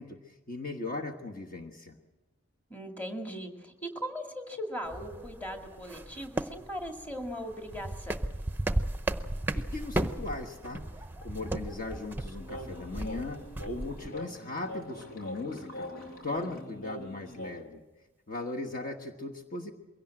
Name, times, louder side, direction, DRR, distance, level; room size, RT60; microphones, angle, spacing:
voice 1, 0.0-2.0 9.5-10.8 11.2-13.4 13.7-15.9 16.2-17.8 18.3-19.7, left 2 dB, 40° left, 3 dB, 1.3 m, -38 dB
voice 2, 2.7-8.2, equal, 10° left, 3 dB, 2.1 m, -39 dB
sound 1, 4.8-14.1, right 1 dB, 10° right, 0.7 m, -35 dB
sound 2, 12.4-17.6, left 1 dB, 80° left, 2.9 m, -43 dB
22.5 x 17.0 x 7.7 m, 1.1 s
head